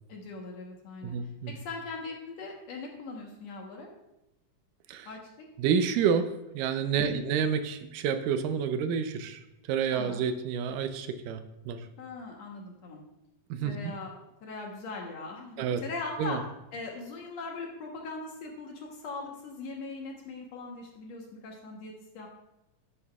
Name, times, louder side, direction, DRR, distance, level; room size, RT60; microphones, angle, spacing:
voice 1, 0.1-1.2 1.5-3.9 5.1-5.5 7.0-7.2 9.9-10.2 12.0-13.0 13.6-14.1 14.4-16.4 16.7-22.3, left 3 dB, 65° left, 0 dB, 2.0 m, -40 dB
voice 2, 1.0-1.6 4.9-5.1 5.6-6.3 6.5-9.4 9.7-11.9 13.5-13.9 15.6-15.8 16.2-16.4, right 7 dB, 90° right, 9 dB, 2.3 m, -29 dB
10.5 x 8.7 x 2.3 m, 0.90 s
omnidirectional pair, 3.8 m